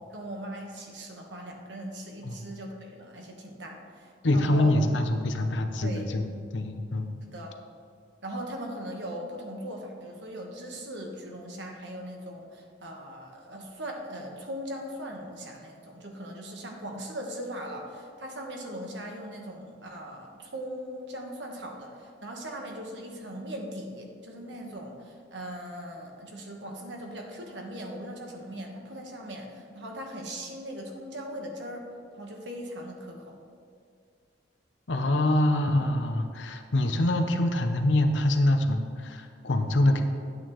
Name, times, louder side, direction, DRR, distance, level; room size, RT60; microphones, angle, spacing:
voice 1, 0.1-4.7 5.8-6.1 7.2-7.6 8.2-31.9 32.1-33.4, equal, 80° right, 1 dB, 1.3 m, -39 dB
voice 2, 4.2-7.1 34.9-40.0, left 1 dB, 90° left, 6 dB, 0.8 m, -25 dB
9.4 x 8.5 x 3.1 m, 2.2 s
head